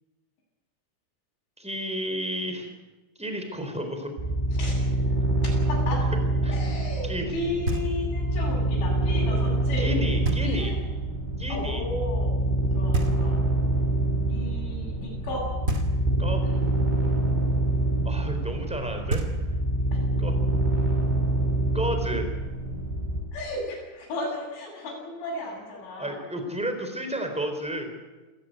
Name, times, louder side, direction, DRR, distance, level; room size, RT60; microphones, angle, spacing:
voice 1, 1.6-2.7 3.2-4.1 6.4-6.5 7.0-7.3 9.8-10.7 11.4-11.8 16.2-16.4 18.0-19.2 20.2-20.3 21.7-22.3 26.0-27.9, equal, ahead, 5 dB, 3.1 m, -31 dB
sound 1, 4.2-23.2, right 1 dB, 75° right, 7.9 m, -26 dB
voice 2, 4.5-4.9 5.4-6.1 6.4-9.9 10.4-10.8 11.5-12.4 12.7-13.4 14.2-15.5 16.4-16.5 19.9-20.0 23.3-26.2, left 2 dB, 90° left, -3 dB, 10.5 m, -34 dB
Knock, 7.6-8.3 10.2-10.9 12.9-13.7 15.6-16.4 18.7-18.8 19.1-19.9, right 2 dB, 35° right, 1.3 m, -31 dB
28.0 x 15.0 x 9.1 m, 1.2 s
omnidirectional pair, 5.3 m